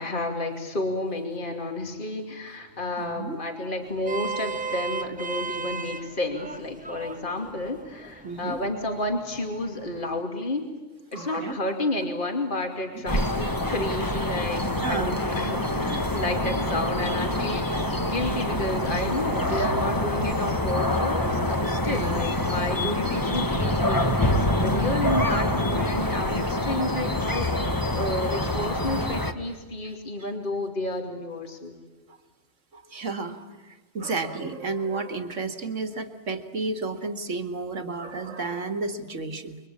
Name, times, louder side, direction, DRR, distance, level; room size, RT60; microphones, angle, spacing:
voice 1, 0.0-10.7 11.1-31.7, left 2 dB, 40° left, 3 dB, 2.8 m, -31 dB
voice 2, 3.0-3.4 7.4-7.5 8.2-8.6 11.1-11.5 12.9-13.0 14.8-15.2 16.8-17.0 21.8-22.2 32.1-32.2 32.7-33.5 33.9-39.6, right 3 dB, 65° right, 7 dB, 2.3 m, -32 dB
Vehicle horn car horn honking, 3.8-10.2, right 4 dB, 5° right, 0.9 m, -36 dB
sound 1, 13.1-29.3, left 1 dB, 15° left, 1.4 m, -26 dB
28.5 x 24.0 x 8.7 m, 1.2 s
omnidirectional pair, 1.4 m